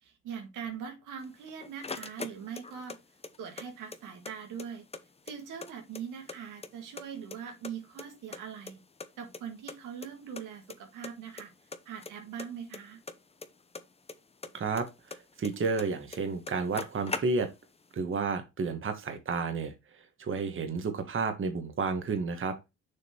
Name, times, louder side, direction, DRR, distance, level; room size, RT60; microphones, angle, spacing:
voice 1, 0.0-3.0 3.4-4.9 5.3-8.8 9.2-11.5 11.9-13.0, right 7 dB, 90° right, 2.0 m, -42 dB
sound 1, 1.2-3.0 3.2-4.3 4.6-4.7 4.9-6.4 6.6-7.4 7.6-9.1 9.3-9.4 9.7-9.8 10.0-10.1 10.4-10.8 11.0-11.4 11.7-14.2 14.4-15.9 16.1-16.2 16.4-17.7, left 4 dB, 20° left, 0.8 m, -40 dB
voice 2, 14.5-14.8 15.1-17.5 17.9-19.7 20.2-22.5, right 4 dB, 40° right, 1.4 m, -31 dB
6.8 x 3.7 x 4.4 m
cardioid pair, 90°, 30 cm